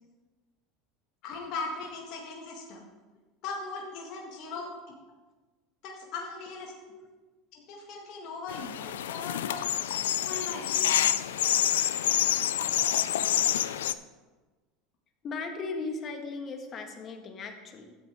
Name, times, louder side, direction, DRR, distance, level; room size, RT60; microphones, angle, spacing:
voice 1, 1.2-2.9 3.4-4.7 5.8-6.7 7.5-9.6 10.2-11.2, left 3 dB, 60° left, -1 dB, 1.7 m, -39 dB
sound 1, 8.5-13.9, left 11 dB, 85° left, 0.3 m, -27 dB
voice 2, 15.2-18.0, left 4 dB, 40° left, 5 dB, 1.5 m, -38 dB
12.0 x 8.1 x 3.6 m, 1.2 s
hypercardioid pair, 100°, 0 cm